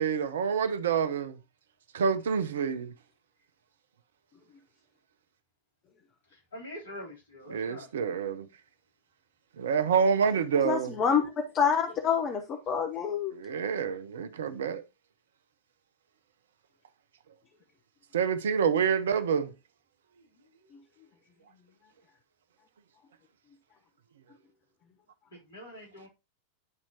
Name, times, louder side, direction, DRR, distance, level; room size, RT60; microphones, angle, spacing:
voice 1, 0.0-1.4 1.9-2.9 7.5-8.5 9.6-10.9 13.3-14.8 18.1-19.5, right 7 dB, 60° right, 0.6 m, -27 dB
voice 2, 6.3-7.9 20.1-20.2 25.3-26.1, equal, 70° left, 3.4 m, -45 dB
voice 3, 10.6-11.2 11.5-13.3, left 7 dB, 30° left, 1.1 m, -27 dB
11.0 x 4.3 x 2.9 m
figure-of-eight pair, 90°, 0 cm